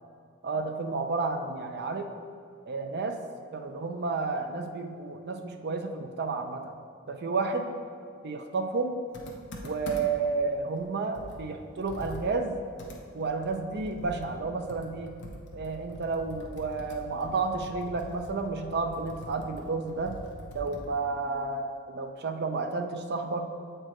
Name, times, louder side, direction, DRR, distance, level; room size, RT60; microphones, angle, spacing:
voice 1, 0.4-2.0 2.7-3.2 3.5-6.7 7.1-7.7 8.2-9.0 9.6-12.6 13.1-15.1 15.5-20.2 20.5-23.5, right 3 dB, 45° right, 5 dB, 0.5 m, -31 dB
Computer keyboard, 9.1-10.3 10.7-10.8 11.1-21.0, left 1 dB, 50° left, 0.8 m, -44 dB
7.6 x 4.4 x 3.0 m, 2.5 s
head